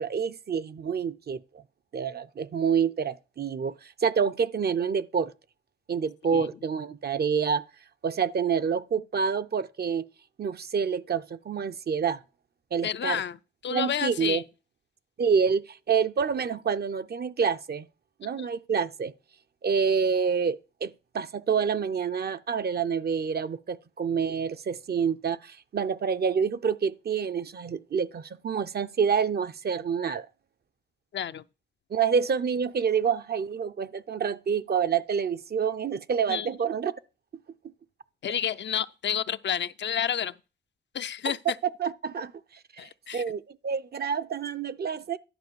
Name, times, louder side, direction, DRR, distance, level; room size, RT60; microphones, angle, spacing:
voice 1, 0.0-1.4 1.9-5.3 5.9-7.6 8.0-10.1 10.4-12.2 12.7-13.2 13.7-14.4 15.2-17.9 18.2-19.1 19.6-30.3 31.9-36.9 41.2-41.3 41.8-42.3 42.8-45.2, right 6 dB, 60° right, 0.5 m, -27 dB
voice 2, 12.8-13.4 13.6-14.4 18.4-18.5 31.1-31.4 36.3-36.5 38.2-40.3 40.9-41.4 42.8-43.2, left 9 dB, 75° left, 0.5 m, -30 dB
11.0 x 3.9 x 6.9 m
wide cardioid pair, 95°, 19 cm